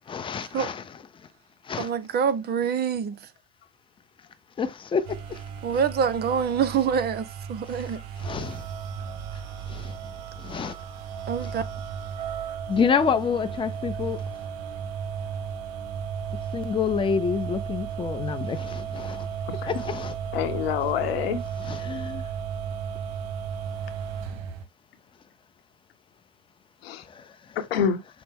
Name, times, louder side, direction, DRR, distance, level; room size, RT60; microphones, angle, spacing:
voice 1, 0.1-0.8 1.6-1.9 4.6-5.4 7.7-8.6 9.7-10.0 10.4-10.8 11.4-11.6 12.7-14.2 16.5-19.3 19.7-20.1 21.6-22.2 27.1-27.3, left 6 dB, 15° left, 0.6 m, -28 dB
voice 2, 1.8-3.2 5.6-8.0 11.3-11.6, right 7 dB, 30° right, 0.6 m, -25 dB
sound 1, 5.0-24.6, right 7 dB, 50° right, 0.9 m, -34 dB
voice 3, 20.3-21.4 26.8-27.1 27.6-28.0, left 8 dB, 75° left, 0.9 m, -26 dB
5.8 x 2.0 x 3.6 m
hypercardioid pair, 85°, 31 cm